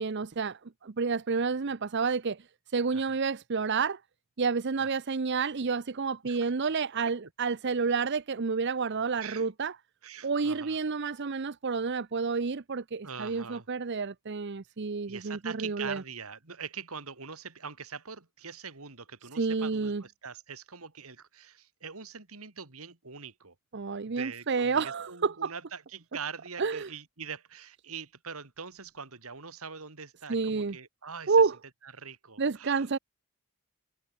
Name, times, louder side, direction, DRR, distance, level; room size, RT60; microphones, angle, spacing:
voice 1, 0.0-2.5 2.7-4.0 4.4-9.7 10.2-16.0 19.3-20.0 23.7-25.5 26.6-26.9 30.3-30.8 31.3-31.6 32.4-33.0, right 5 dB, 50° right, 0.7 m, -29 dB
voice 2, 9.2-9.5 10.0-10.8 13.0-13.7 15.1-23.5 24.1-31.4 31.8-32.9, right 6 dB, 75° right, 2.6 m, -43 dB
head